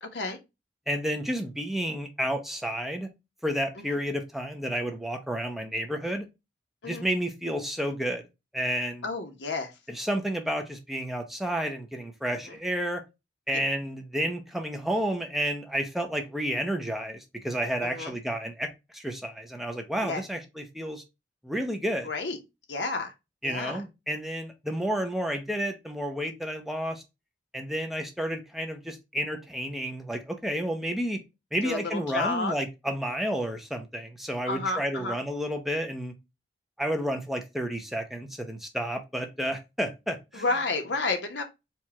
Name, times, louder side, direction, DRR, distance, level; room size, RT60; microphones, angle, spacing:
voice 1, 0.0-0.4 3.8-4.0 6.8-7.0 9.0-9.7 12.5-12.6 17.8-18.1 20.0-20.2 22.0-22.4 22.7-23.1 23.4-23.8 31.6-32.5 34.5-35.2 40.3-41.4, left 3 dB, 75° left, 1.0 m, -31 dB
voice 2, 0.9-3.1 3.4-6.2 6.8-8.2 8.5-9.0 9.9-13.0 13.5-18.7 18.9-21.0 21.4-22.1 23.4-27.0 27.5-31.2 31.5-36.1 36.8-40.4, equal, ahead, 0.6 m, -31 dB
4.6 x 2.4 x 4.1 m
head